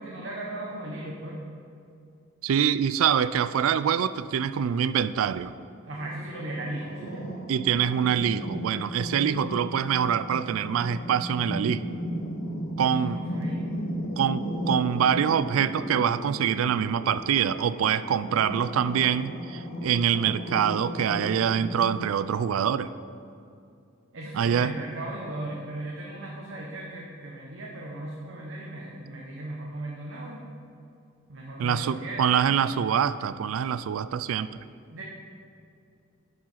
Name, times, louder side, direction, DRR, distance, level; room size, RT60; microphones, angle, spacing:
voice 1, 0.0-1.4 5.8-7.3 12.8-13.7 24.1-30.4 31.3-32.5 34.9-35.0, right 1 dB, 65° right, -3 dB, 1.0 m, -37 dB
voice 2, 2.4-5.5 7.5-11.8 12.8-13.2 14.2-22.9 24.4-24.7 31.6-34.6, right 8 dB, 85° right, 15 dB, 0.3 m, -25 dB
sound 1, 6.0-22.1, equal, 70° left, 0.9 m, -35 dB
10.5 x 4.9 x 5.6 m, 2.5 s
head